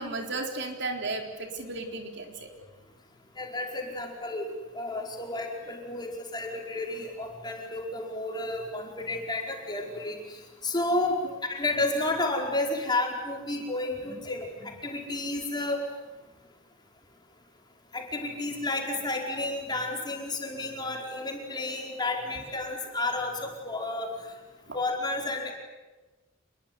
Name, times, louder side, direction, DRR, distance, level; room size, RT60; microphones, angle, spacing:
voice 1, 0.0-2.5 11.2-11.3 24.7-24.8, right 3 dB, 60° right, 4 dB, 3.9 m, -34 dB
voice 2, 3.4-4.5 4.7-10.4 10.6-11.2 11.5-15.8 17.9-24.1 24.7-25.5, left 2 dB, 20° left, 1 dB, 5.0 m, -31 dB
27.5 x 22.0 x 9.6 m, 1.2 s
head